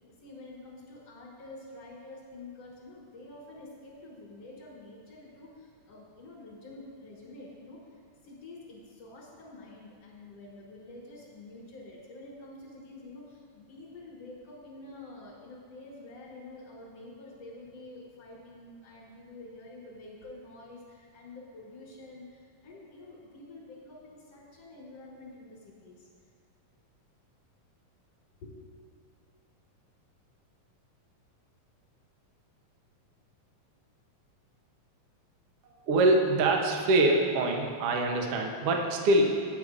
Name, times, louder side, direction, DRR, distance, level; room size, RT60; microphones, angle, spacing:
voice 1, 0.0-26.1 28.4-28.6, left 2 dB, 55° left, -4 dB, 2.4 m, -48 dB
voice 2, 35.9-39.4, right 2 dB, 70° right, 2 dB, 1.4 m, -24 dB
8.8 x 8.4 x 5.0 m, 2.2 s
omnidirectional pair, 3.8 m